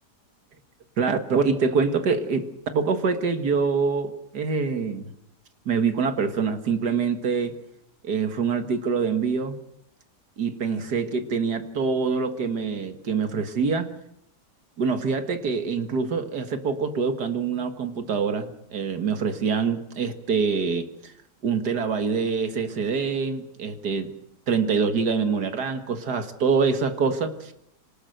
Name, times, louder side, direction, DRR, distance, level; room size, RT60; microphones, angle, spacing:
voice 1, 1.0-5.1 5.7-7.6 8.0-9.6 10.4-13.9 14.8-21.1 21.4-24.1 24.5-27.5, right 5 dB, 70° right, 9 dB, 2.2 m, -25 dB
25.0 x 19.5 x 7.9 m, 0.74 s
omnidirectional pair, 1.8 m